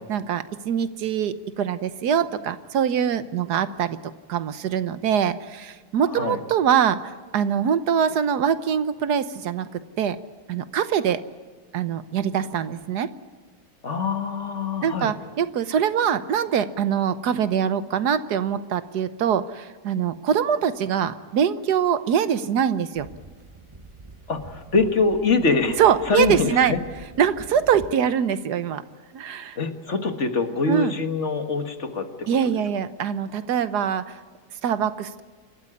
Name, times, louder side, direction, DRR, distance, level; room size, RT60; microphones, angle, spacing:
voice 1, 0.0-4.0 4.3-9.7 10.0-10.2 10.5-11.2 11.7-13.1 14.8-23.1 25.8-26.8 27.2-28.8 29.1-29.6 30.7-30.9 32.3-34.2 34.6-35.2, right 8 dB, 75° right, 13 dB, 1.5 m, -23 dB
voice 2, 13.8-15.1 24.3-25.8 26.1-26.8 29.6-32.5, left 4 dB, 45° left, 7 dB, 1.9 m, -24 dB
sound 1, 22.9-27.9, right 2 dB, 20° right, 1.0 m, -44 dB
28.0 x 13.0 x 9.9 m, 1.5 s
omnidirectional pair, 1.7 m